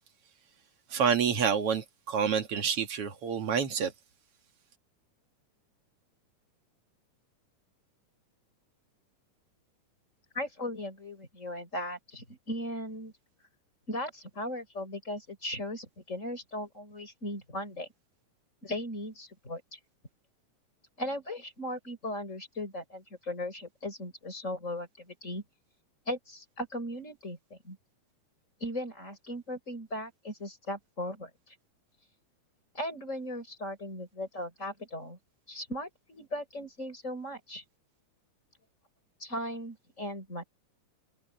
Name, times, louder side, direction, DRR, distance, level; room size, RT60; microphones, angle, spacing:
voice 1, 0.9-3.9, right 7 dB, 50° right, 2.4 m, -28 dB
voice 2, 10.3-13.1 13.9-17.9 18.6-19.8 21.0-25.4 26.1-27.8 28.6-31.5 32.7-35.2 35.5-37.6 39.2-40.4, left 1 dB, 20° left, 5.6 m, -37 dB
omnidirectional pair, 3.8 m